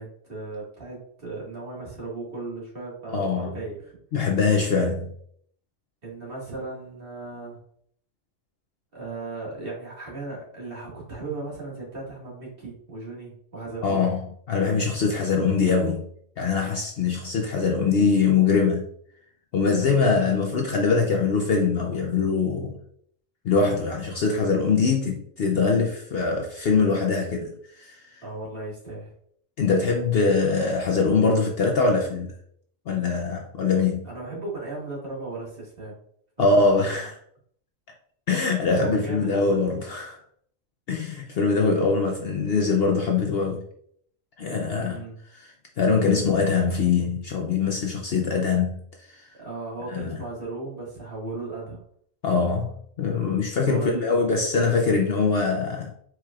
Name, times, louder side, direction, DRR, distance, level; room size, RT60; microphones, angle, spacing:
voice 1, 0.0-4.0 6.0-7.6 8.9-14.0 20.1-20.4 28.2-29.1 34.0-36.0 36.4-37.1 38.7-39.6 44.8-45.2 49.4-51.8 53.6-54.3, right 3 dB, 45° right, 2.1 m, -36 dB
voice 2, 3.1-3.5 4.1-5.1 13.8-16.1 16.4-18.9 19.5-22.8 23.4-28.2 29.6-32.3 32.9-34.1 36.4-37.1 38.3-40.2 40.9-43.6 44.4-45.0 45.3-49.3 49.9-50.2 52.2-52.7 53.0-55.9, left 4 dB, 55° left, 0.7 m, -23 dB
4.7 x 4.4 x 2.4 m
omnidirectional pair, 1.4 m